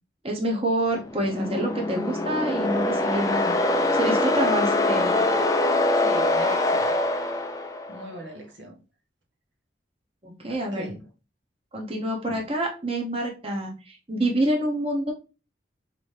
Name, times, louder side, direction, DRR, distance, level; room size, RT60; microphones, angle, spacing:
voice 1, 0.2-3.6 3.9-5.1 10.2-10.9 11.7-15.1, right 1 dB, 30° right, 0.9 m, -27 dB
sound 1, 1.0-8.1, left 2 dB, 20° left, 0.4 m, -24 dB
voice 2, 4.4-4.7 6.0-6.9 7.9-8.8 10.7-11.0, right 1 dB, 90° right, 1.2 m, -38 dB
4.9 x 2.7 x 3.2 m
head